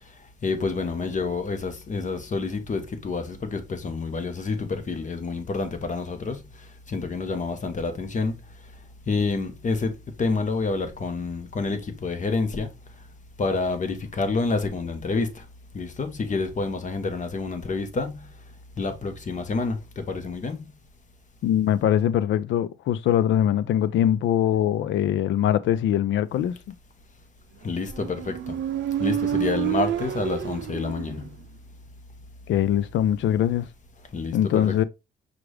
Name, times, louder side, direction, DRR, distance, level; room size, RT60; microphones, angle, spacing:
voice 1, 0.0-13.1 13.4-15.5 15.7-20.7 27.6-28.7 29.0-31.3 34.1-34.8, left 3 dB, 40° left, 1.1 m, -29 dB
voice 2, 21.4-26.7 32.5-33.7 34.3-34.8, left 10 dB, 75° left, 0.5 m, -22 dB
Motorcycle, 27.8-31.4, right 11 dB, 65° right, 0.5 m, -28 dB
5.9 x 2.5 x 3.2 m
cardioid pair, 90°, 20 cm